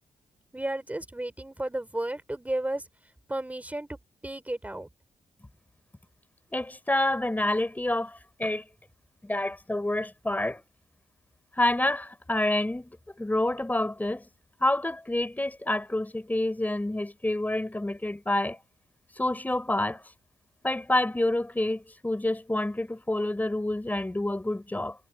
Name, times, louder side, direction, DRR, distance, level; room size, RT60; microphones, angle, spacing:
voice 1, 0.5-2.9 3.3-4.9, right 1 dB, 10° right, 4.4 m, -33 dB
voice 2, 6.5-8.6 9.2-10.6 11.6-14.3 14.6-18.6 19.2-20.0 20.6-25.0, left 1 dB, 15° left, 6.1 m, -28 dB
cardioid pair, 75°, 12 cm